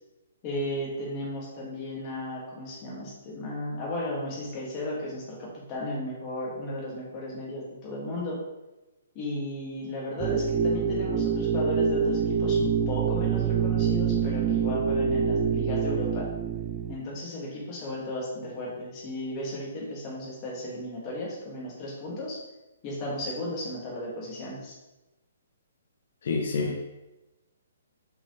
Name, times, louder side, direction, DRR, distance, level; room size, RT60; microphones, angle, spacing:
voice 1, 0.4-8.4 9.1-16.3 16.9-22.4 22.8-24.7, left 1 dB, 20° left, -5 dB, 2.1 m, -34 dB
sound 1, 10.2-17.0, right 6 dB, 15° right, 0.4 m, -26 dB
voice 2, 26.2-26.9, left 4 dB, 55° left, 1 dB, 1.0 m, -28 dB
7.7 x 5.3 x 3.3 m, 1.0 s
hypercardioid pair, 170°, 0 cm